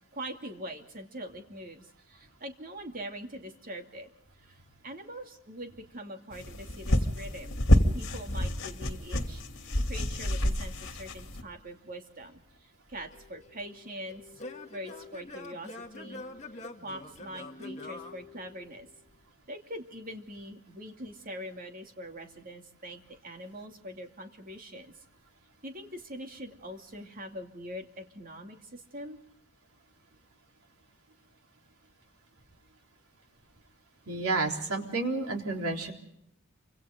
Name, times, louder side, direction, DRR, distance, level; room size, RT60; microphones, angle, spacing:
voice 1, 0.1-4.1 4.4-7.6 7.9-14.3 14.7-16.2 16.8-18.9 19.5-24.9 25.6-29.2, equal, 40° right, 4 dB, 2.6 m, -43 dB
sound 1, 6.3-11.4, equal, 60° left, 2.7 m, -28 dB
Singing / Plucked string instrument, 13.1-19.0, left 2 dB, 35° left, 1.9 m, -45 dB
voice 2, 34.1-35.9, right 3 dB, 90° right, 2 dB, 3.9 m, -30 dB
28.5 x 26.0 x 3.8 m, 0.73 s
head